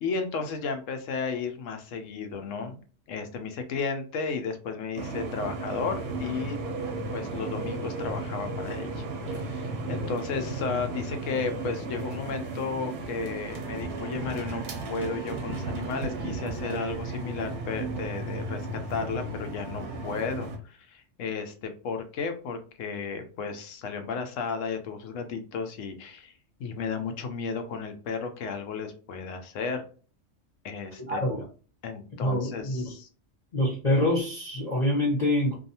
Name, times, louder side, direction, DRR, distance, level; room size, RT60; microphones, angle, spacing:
voice 1, 0.0-2.8 3.1-6.6 7.1-18.6 18.9-26.3 26.6-29.8 30.6-31.3 31.8-33.1, left 5 dB, 90° left, 6 dB, 1.0 m, -33 dB
sound 1, 4.9-20.6, right 2 dB, 65° right, 0.8 m, -35 dB
voice 2, 31.1-31.4 32.2-32.9 33.5-35.6, left 1 dB, 35° left, -6 dB, 0.8 m, -26 dB
2.6 x 2.3 x 2.7 m, 0.38 s
omnidirectional pair, 1.3 m